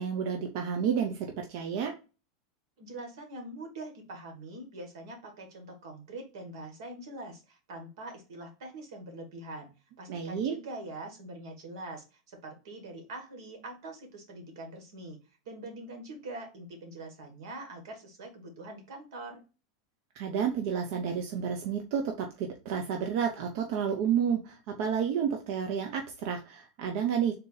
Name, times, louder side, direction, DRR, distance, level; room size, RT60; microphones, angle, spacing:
voice 1, 0.0-1.9 10.1-10.5 20.1-27.4, right 7 dB, 45° right, 3 dB, 0.6 m, -30 dB
voice 2, 2.8-9.7 10.0-15.2 15.4-19.4, right 2 dB, 75° right, 5 dB, 1.7 m, -43 dB
3.9 x 2.6 x 3.9 m, 0.31 s
supercardioid pair, 175°, 2 cm